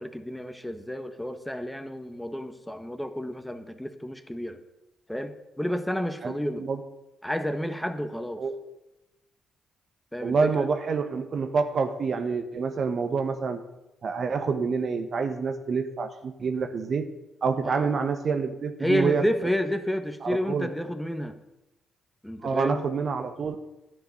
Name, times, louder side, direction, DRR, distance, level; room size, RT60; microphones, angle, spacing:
voice 1, 0.0-4.6 5.1-6.7 7.2-8.4 10.1-10.7 17.6-17.9 18.8-21.3 22.2-22.8, equal, 5° left, 8 dB, 1.3 m, -30 dB
voice 2, 6.2-6.8 8.4-8.6 10.2-13.6 14.0-17.1 17.4-19.2 20.2-20.7 22.4-23.6, right 5 dB, 55° right, 8 dB, 1.1 m, -27 dB
11.0 x 8.0 x 6.5 m, 0.97 s
hypercardioid pair, 50°, 0 cm